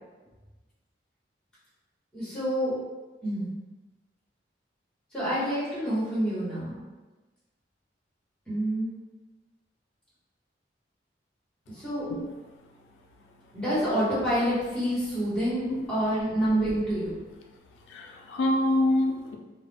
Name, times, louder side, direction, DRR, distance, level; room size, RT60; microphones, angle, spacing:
voice 1, 2.1-2.7 3.2-3.5 5.1-6.7 8.5-8.9 11.7-12.1 13.5-17.1, equal, 5° left, -10 dB, 1.0 m, -27 dB
voice 2, 17.9-19.4, left 1 dB, 90° left, 2 dB, 0.3 m, -26 dB
2.3 x 2.0 x 3.2 m, 1.2 s
head